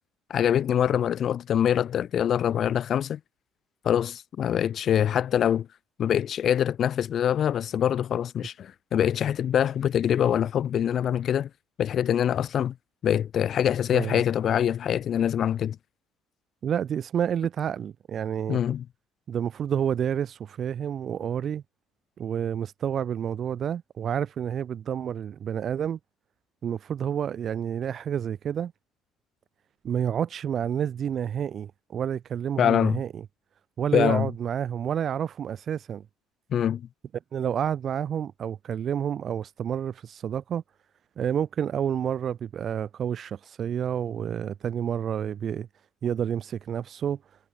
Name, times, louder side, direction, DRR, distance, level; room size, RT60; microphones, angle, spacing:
voice 1, 0.3-3.2 3.8-5.7 6.0-11.5 11.8-12.7 13.0-15.8 18.5-18.8 32.6-33.0 33.9-34.3 36.5-36.9, left 9 dB, 50° left, 0.3 m, -24 dB
voice 2, 16.6-18.6 19.3-21.6 22.2-26.0 26.6-28.7 29.8-33.2 33.8-36.0 37.3-40.6 41.2-45.7 46.0-47.2, right 8 dB, 50° right, 0.4 m, -29 dB
supercardioid pair, 95°, 0 cm